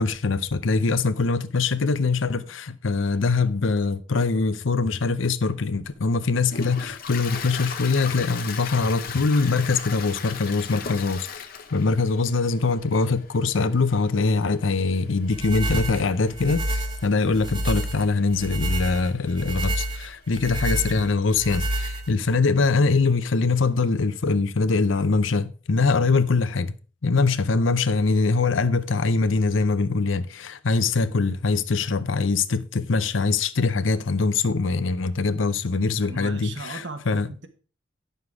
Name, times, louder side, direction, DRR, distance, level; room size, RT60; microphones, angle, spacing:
voice 1, 0.0-11.4 11.7-26.7 27.0-37.3, left 4 dB, 85° left, 0.7 m, -23 dB
Toilet flush, 5.5-20.2, left 6 dB, 50° left, 1.1 m, -39 dB
sound 1, 15.3-22.4, right 1 dB, 25° right, 1.2 m, -29 dB
voice 2, 36.0-37.5, right 3 dB, 65° right, 1.3 m, -37 dB
9.6 x 6.6 x 4.8 m
head